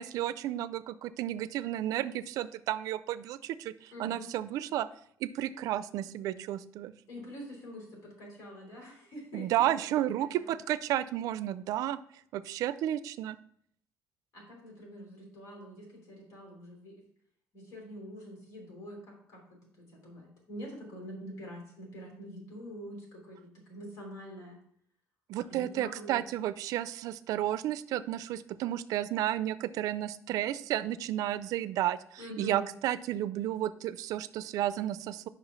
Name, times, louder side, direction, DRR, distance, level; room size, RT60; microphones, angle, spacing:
voice 1, 0.0-4.9 5.2-6.9 9.3-12.0 12.3-13.4 25.3-35.3, right 12 dB, 85° right, 15 dB, 0.4 m, -32 dB
voice 2, 3.9-4.3 7.1-9.8 10.2-10.6 14.3-17.0 17.5-24.6 25.4-26.2 32.2-32.7, equal, 65° left, -1 dB, 3.1 m, -45 dB
5.5 x 4.9 x 5.4 m, 0.65 s
cardioid pair, 170°, 6 cm